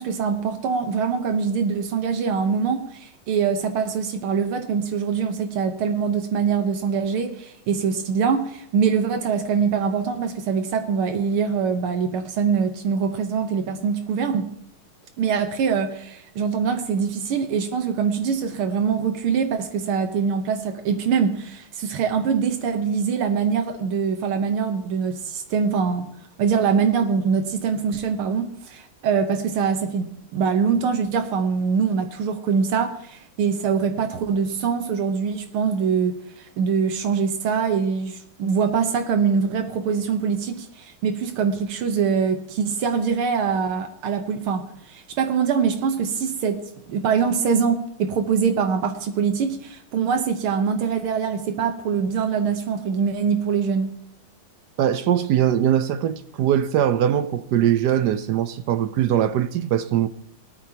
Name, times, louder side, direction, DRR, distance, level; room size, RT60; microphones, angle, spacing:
voice 1, 0.0-14.5 15.2-26.1 26.4-46.6 46.9-53.9, right 6 dB, 85° right, 1.9 m, -23 dB
voice 2, 54.8-60.1, right 10 dB, 70° right, 1.0 m, -21 dB
18.5 x 13.5 x 2.9 m
omnidirectional pair, 2.3 m